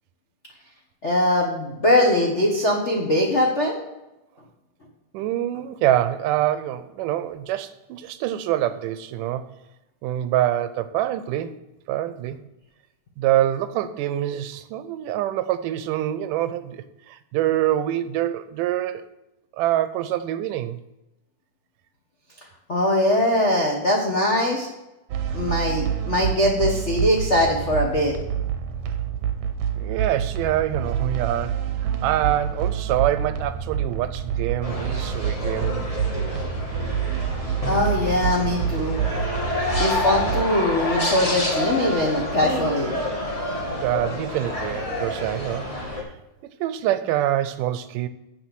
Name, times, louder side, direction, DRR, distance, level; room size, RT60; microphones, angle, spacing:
voice 1, 1.0-3.8 22.7-24.7 25.3-28.2 37.7-39.0 39.8-43.0, left 1 dB, 80° left, -2 dB, 0.6 m, -21 dB
voice 2, 5.1-9.5 10.0-11.5 11.9-12.4 13.2-19.1 19.6-20.8 29.8-35.8 43.8-46.1 46.4-48.1, right 12 dB, 90° right, 12 dB, 2.2 m, -25 dB
sound 1, 25.1-40.4, right 8 dB, 70° right, 1.6 m, -27 dB
sound 2, 34.6-46.0, left 1 dB, 20° left, 1.1 m, -28 dB
7.7 x 7.1 x 6.1 m, 0.95 s
omnidirectional pair, 3.7 m